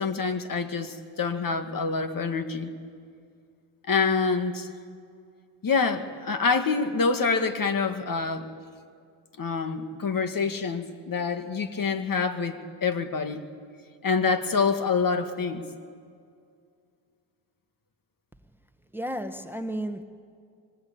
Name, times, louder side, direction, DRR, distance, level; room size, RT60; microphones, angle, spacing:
voice 1, 0.0-2.7 3.9-4.7 5.6-8.5 9.4-13.5 14.0-15.7, left 4 dB, 40° left, 9 dB, 2.2 m, -26 dB
voice 2, 18.9-20.0, right 1 dB, 5° right, 9 dB, 1.4 m, -32 dB
25.5 x 24.0 x 8.7 m, 2.3 s
supercardioid pair, 75°, 48 cm